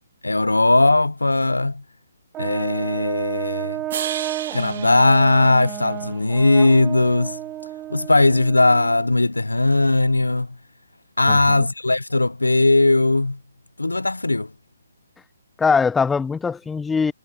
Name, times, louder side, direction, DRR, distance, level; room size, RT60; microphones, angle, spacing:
voice 1, 0.2-1.8 2.4-3.8 4.5-7.4 7.9-10.5 11.2-13.4 13.8-14.5, left 2 dB, 90° left, 0.5 m, -18 dB
Brass instrument, 2.3-9.1, right 14 dB, 15° right, 1.2 m, -32 dB
sound 1, 3.9-6.2, right 8 dB, 50° right, 1.6 m, -34 dB
voice 2, 11.3-11.7 15.6-17.1, left 5 dB, 10° left, 0.5 m, -21 dB
figure-of-eight pair, 140°, 0 cm